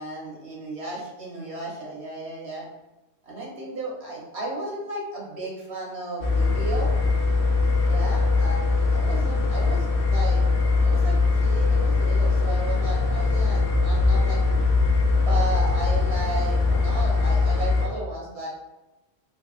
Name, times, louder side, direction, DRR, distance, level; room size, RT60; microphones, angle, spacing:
voice 1, 0.0-2.7 3.2-6.9 7.9-8.6 8.9-10.4 10.8-14.7 15.2-18.5, right 2 dB, 75° right, -4 dB, 1.3 m, -34 dB
sound 1, 6.2-17.9, left 3 dB, 60° left, 0.8 m, -21 dB
3.4 x 3.3 x 2.3 m, 0.98 s
omnidirectional pair, 1.1 m